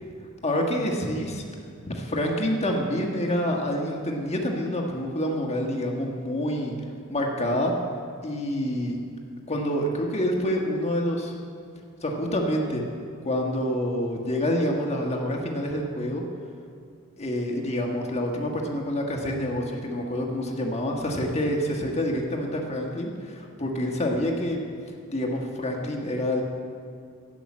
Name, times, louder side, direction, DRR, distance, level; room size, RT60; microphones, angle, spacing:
voice 1, 0.4-1.5 1.9-6.7 7.1-7.7 8.2-9.0 9.5-11.4 12.0-12.8 13.2-16.2 17.2-24.6 25.1-26.4, equal, 30° left, 0 dB, 1.5 m, -27 dB
11.5 x 7.7 x 8.6 m, 2.3 s
head